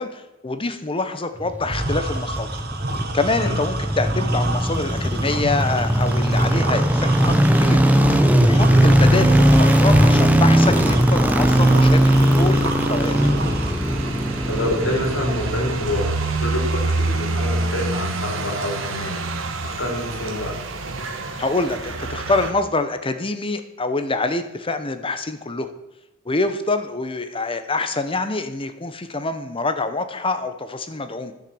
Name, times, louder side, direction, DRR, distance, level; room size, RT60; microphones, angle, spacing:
voice 1, 0.0-2.6 2.9-7.8 8.1-13.2 21.4-25.7 26.2-31.3, left 3 dB, 25° left, 9 dB, 0.9 m, -26 dB
sound 1, 1.4-16.6 16.9-17.0, right 1 dB, 10° right, 0.7 m, -18 dB
sound 2, 1.7-13.7, right 2 dB, 50° right, 1.4 m, -29 dB
sound 3, 8.7-22.5, right 2 dB, 75° right, 1.4 m, -29 dB
voice 2, 14.5-16.1 16.4-16.5 17.0-19.2 19.6-20.6, left 1 dB, 85° left, 1 dB, 3.7 m, -27 dB
12.0 x 6.5 x 7.0 m, 0.97 s
head